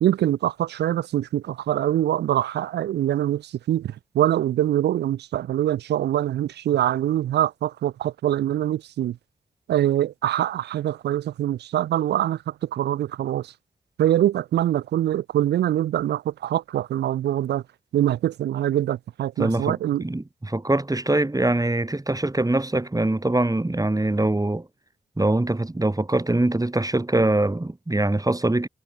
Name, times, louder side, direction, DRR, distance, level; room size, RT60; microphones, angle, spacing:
voice 1, 0.0-9.2 9.7-13.5 14.0-17.6 17.9-20.0, right 12 dB, 90° right, 0.6 m, -24 dB
voice 2, 19.4-19.7 20.0-24.7 25.2-28.7, right 2 dB, 20° right, 3.1 m, -23 dB
supercardioid pair, 45°, 17 cm